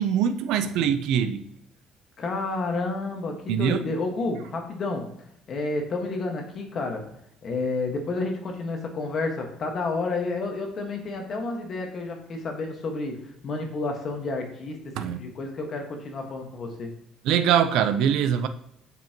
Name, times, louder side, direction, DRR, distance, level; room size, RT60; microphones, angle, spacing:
voice 1, 0.0-1.4 3.5-3.9 15.0-15.2 17.2-18.5, right 8 dB, 75° right, 0.5 m, -23 dB
voice 2, 2.2-5.1 5.5-7.0 7.4-16.9, left 3 dB, 40° left, 1.5 m, -30 dB
7.4 x 5.6 x 2.9 m
cardioid pair, 145°, 0 cm